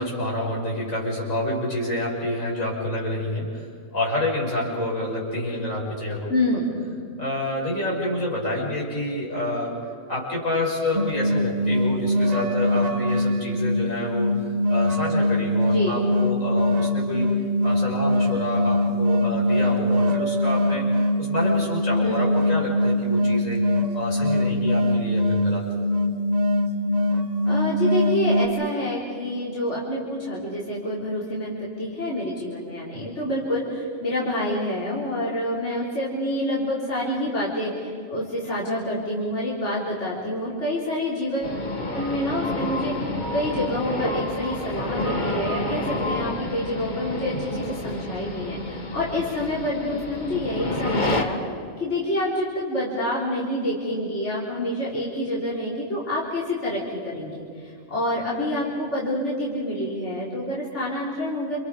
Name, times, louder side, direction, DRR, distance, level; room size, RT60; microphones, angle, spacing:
voice 1, 0.0-3.7 3.9-6.4 7.2-9.8 10.1-23.6 23.9-25.6, left 1 dB, 85° left, -3 dB, 6.3 m, -28 dB
voice 2, 6.3-6.8 15.7-16.0 22.0-22.4 27.5-41.5 41.9-51.4 51.8-61.6, left 1 dB, 60° left, -6 dB, 4.5 m, -27 dB
sound 1, 10.9-28.5, left 1 dB, 35° right, 1.0 m, -22 dB
sound 2, 41.4-51.2, left 2 dB, 35° left, 1.9 m, -29 dB
30.0 x 28.0 x 5.0 m, 2.3 s
omnidirectional pair, 1.3 m